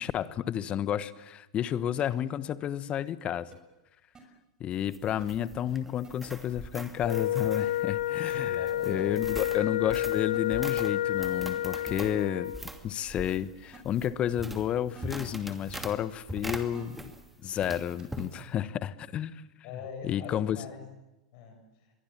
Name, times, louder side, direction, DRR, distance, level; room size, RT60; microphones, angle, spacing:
voice 1, 0.0-3.5 4.6-8.6 8.9-12.5 12.8-17.1 17.4-19.4 20.0-20.6, left 10 dB, 35° left, 16 dB, 1.1 m, -31 dB
sound 1, 2.0-2.2 3.5-3.6 4.1-4.2 5.2-5.3 6.0-6.1 7.6-7.7 9.0-9.1 10.3-10.4 11.2-11.3 11.5-11.6 13.3-13.4 13.7-13.8 14.9-15.4 15.8-15.9 16.7-17.2 18.0-18.2, right 6 dB, 20° right, 6.2 m, -51 dB
sound 2, 4.7-17.3 17.6-18.3, right 1 dB, 5° right, 2.6 m, -43 dB
Wind instrument woodwind instrument, 7.0-12.6, left 13 dB, 70° left, 1.5 m, -30 dB
voice 2, 8.3-9.3 19.6-20.8 21.3-21.9, left 6 dB, 50° left, 5 dB, 7.1 m, -43 dB
27.5 x 22.5 x 7.5 m, 0.98 s
hypercardioid pair, 95°, 3 cm